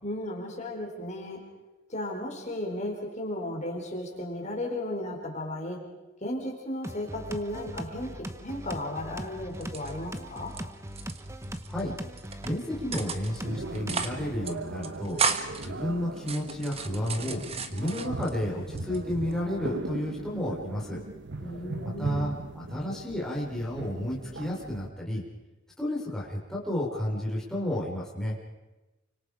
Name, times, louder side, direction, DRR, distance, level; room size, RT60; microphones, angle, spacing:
voice 1, 0.0-1.4 1.9-5.8 6.2-8.1 8.4-10.5 21.4-22.3, left 1 dB, 35° left, 0 dB, 4.6 m, -35 dB
sound 1, 6.8-14.4, right 1 dB, 15° right, 1.1 m, -40 dB
sound 2, 9.5-10.6 10.9-11.8 12.2-12.5 12.9-13.4 13.7-14.2 14.4-14.5 14.8-15.7 16.2-18.4 18.8-19.4, right 5 dB, 30° right, 1.4 m, -33 dB
voice 2, 12.4-15.2 15.6-17.4 17.7-21.0 22.0-25.2 25.8-28.3, left 1 dB, 5° left, -5 dB, 4.5 m, -32 dB
sound 3, 13.4-24.9, right 2 dB, 55° right, 1.1 m, -39 dB
29.5 x 25.0 x 5.1 m, 1.1 s
head